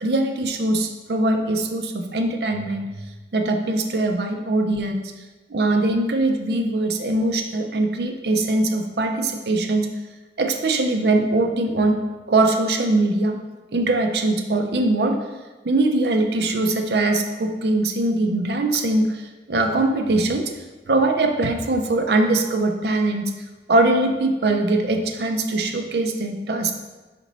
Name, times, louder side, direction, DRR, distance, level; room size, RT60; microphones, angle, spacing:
voice 1, 0.0-3.1 3.3-5.1 5.5-9.9 10.4-12.0 12.3-13.4 13.7-15.2 15.6-19.1 19.5-20.5 20.9-23.3 23.7-26.7, right 2 dB, 65° right, 5 dB, 0.6 m, -21 dB
4.3 x 4.1 x 5.3 m, 1.2 s
head